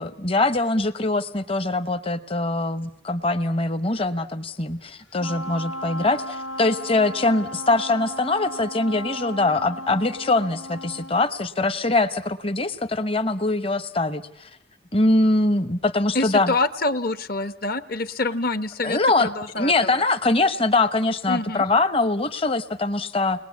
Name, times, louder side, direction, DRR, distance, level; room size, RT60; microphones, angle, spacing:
voice 1, 0.0-14.5 14.9-16.5 18.8-19.3 19.6-23.4, left 2 dB, 25° left, 11 dB, 1.0 m, -23 dB
Wind instrument woodwind instrument, 5.2-11.3, equal, 85° left, 2.3 m, -35 dB
voice 2, 16.1-20.0 21.3-21.6, left 2 dB, 45° left, 11 dB, 1.1 m, -26 dB
30.0 x 21.5 x 8.4 m, 0.75 s
head